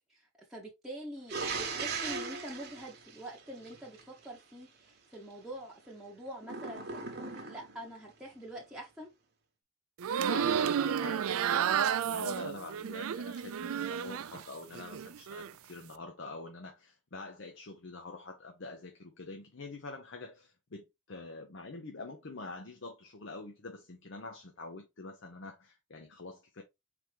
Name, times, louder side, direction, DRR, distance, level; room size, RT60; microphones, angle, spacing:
voice 1, 0.1-9.1, right 1 dB, ahead, 0.9 m, -45 dB
sound 1, 1.3-4.0 6.4-7.8, right 4 dB, 50° right, 1.0 m, -38 dB
sound 2, 10.0-14.4 14.7-15.5, right 8 dB, 85° right, 0.4 m, -31 dB
voice 2, 10.3-26.6, left 3 dB, 60° left, 0.7 m, -45 dB
4.4 x 3.4 x 3.3 m
head